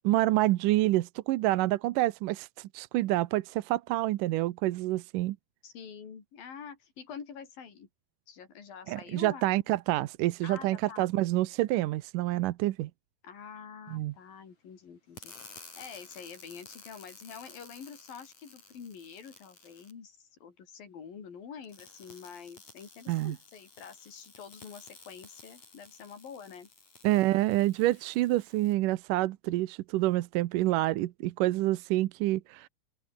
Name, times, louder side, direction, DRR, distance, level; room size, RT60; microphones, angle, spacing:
voice 1, 0.0-5.4 8.9-12.9 13.9-14.1 23.1-23.4 27.0-32.7, right 16 dB, 75° right, 2.3 m, -27 dB
voice 2, 5.6-7.9 8.3-9.6 10.4-11.1 13.2-26.7, left 6 dB, 80° left, 5.7 m, -47 dB
sound 1, 15.2-19.9 21.6-28.7, left 4 dB, 55° left, 8.1 m, -53 dB
open air
omnidirectional pair, 4.0 m